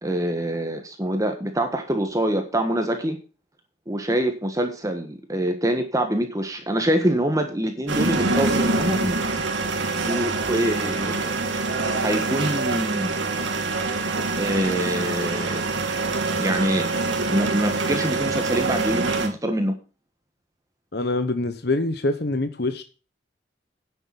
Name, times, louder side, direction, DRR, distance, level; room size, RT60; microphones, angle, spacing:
voice 1, 0.0-3.2 3.9-9.4 10.1-11.3 12.0-13.1 14.4-15.6 16.4-16.9 17.3-19.7, right 1 dB, 20° right, 5 dB, 1.4 m, -25 dB
sound 1, 7.9-19.3, right 3 dB, 85° right, 2.8 m, -25 dB
voice 2, 20.9-22.8, left 2 dB, 55° left, 9 dB, 1.0 m, -25 dB
10.5 x 7.1 x 7.0 m, 0.35 s
head